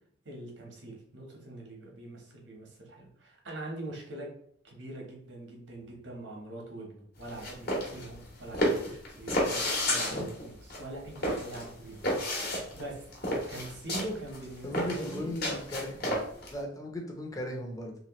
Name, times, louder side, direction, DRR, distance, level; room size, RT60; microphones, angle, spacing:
voice 1, 0.2-4.3 4.6-13.0 13.5-15.3, right 1 dB, 90° right, -1 dB, 1.2 m, -43 dB
sound 1, 7.2-16.5, equal, 55° left, 1.2 m, -31 dB
voice 2, 14.6-17.9, left 1 dB, 20° left, 1 dB, 0.7 m, -37 dB
3.2 x 3.1 x 3.0 m, 0.64 s
head